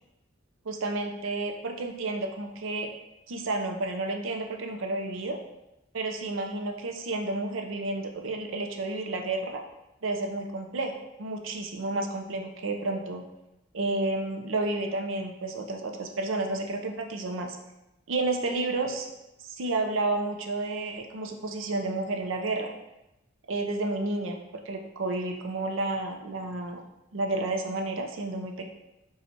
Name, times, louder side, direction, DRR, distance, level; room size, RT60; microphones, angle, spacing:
voice 1, 0.7-2.9 3.3-5.4 5.9-9.6 10.0-13.2 13.7-17.6 18.1-19.1 19.4-22.7 23.5-26.8 27.1-28.7, right 2 dB, 80° right, 4 dB, 0.5 m, -31 dB
4.3 x 2.3 x 4.0 m, 0.91 s
head